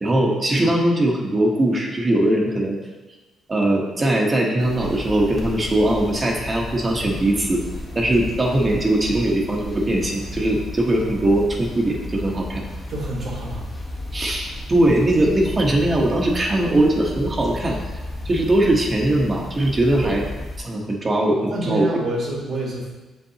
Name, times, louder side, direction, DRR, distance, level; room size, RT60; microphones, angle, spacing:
voice 1, 0.0-2.8 3.5-7.6 7.9-12.6 14.1-17.8 18.2-20.2 20.6-22.0, right 1 dB, 30° right, 0 dB, 1.1 m, -20 dB
sound 1, 4.6-20.6, left 1 dB, 20° left, 1.1 m, -33 dB
voice 2, 12.9-13.6 20.0-20.2 21.5-23.0, right 2 dB, 60° right, -4 dB, 1.6 m, -27 dB
7.0 x 5.5 x 2.9 m, 1.2 s
cardioid pair, 90°, 0 cm